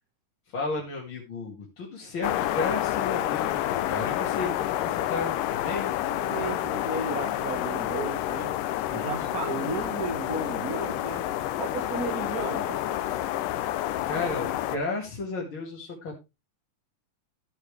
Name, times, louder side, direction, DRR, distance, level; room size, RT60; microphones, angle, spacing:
voice 1, 0.5-5.9 9.4-9.7 14.1-16.1, left 3 dB, 40° left, -4 dB, 2.7 m, -33 dB
sound 1, 2.2-14.8, left 13 dB, 90° left, 2.4 m, -29 dB
voice 2, 6.1-8.5 8.9-11.3 11.6-12.8, right 4 dB, 40° right, 1 dB, 1.4 m, -34 dB
12.5 x 8.6 x 3.3 m, 0.25 s
omnidirectional pair, 3.7 m